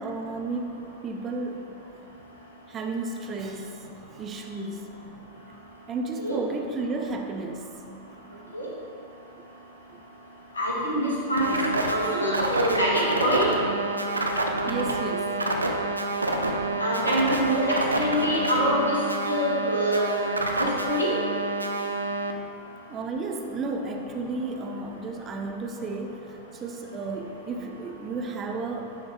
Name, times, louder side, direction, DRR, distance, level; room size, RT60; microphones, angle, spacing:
voice 1, 0.0-1.6 2.7-3.8 4.1-4.9 5.9-7.7 8.4-8.5 14.6-15.4 22.9-29.0, right 3 dB, 25° right, 3 dB, 0.6 m, -33 dB
voice 2, 10.5-11.5 11.9-13.5 16.8-17.7 17.9-19.0 19.2-21.1, equal, 80° left, -5 dB, 1.6 m, -25 dB
sound 1, 11.4-22.3, right 2 dB, 80° right, 0.5 m, -28 dB
10.0 x 3.9 x 3.7 m, 2.5 s
figure-of-eight pair, 90°, 0 cm